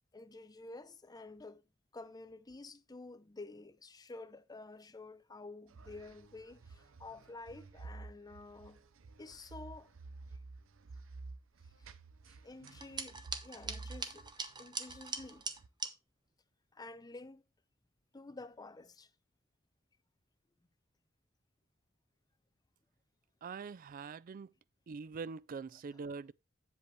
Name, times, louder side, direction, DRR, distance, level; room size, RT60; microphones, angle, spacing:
voice 1, 0.1-1.7 1.9-8.9 9.2-9.9 11.8-11.9 12.3-14.3 14.6-15.5 16.7-17.4 18.1-19.1, left 2 dB, 20° left, 0.6 m, -50 dB
sound 1, 5.7-15.7, right 3 dB, 70° right, 0.7 m, -52 dB
sound 2, 12.7-15.9, right 4 dB, 20° right, 0.8 m, -42 dB
voice 2, 23.4-24.5 24.9-26.3, right 5 dB, 45° right, 0.4 m, -43 dB
8.3 x 7.8 x 3.1 m
head